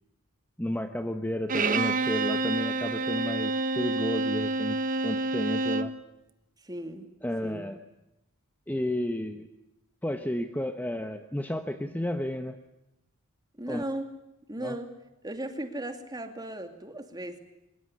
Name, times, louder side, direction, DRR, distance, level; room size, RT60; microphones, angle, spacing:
voice 1, 0.6-5.9 7.2-7.8 8.7-9.5 10.0-12.6 13.7-13.8 14.6-14.8, left 1 dB, 10° left, 7 dB, 1.1 m, -32 dB
Bowed string instrument, 1.5-6.0, right 2 dB, 40° right, 1.3 m, -28 dB
voice 2, 6.6-7.1 7.4-7.7 13.6-14.1 14.5-14.9 15.2-17.4, right 1 dB, 20° right, 6 dB, 2.6 m, -36 dB
24.0 x 22.5 x 9.8 m, 0.90 s
head